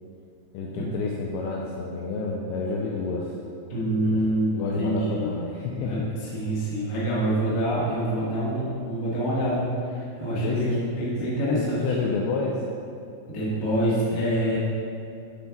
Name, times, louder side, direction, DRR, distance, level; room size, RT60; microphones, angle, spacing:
voice 1, 0.5-3.3 4.1-6.1 10.3-10.9 11.5-12.6, left 4 dB, 85° left, -2 dB, 2.3 m, -29 dB
voice 2, 3.7-5.3 5.7-11.8 13.3-14.6, right 1 dB, 50° left, -7 dB, 1.0 m, -26 dB
10.5 x 4.5 x 5.9 m, 2.5 s
omnidirectional pair, 5.2 m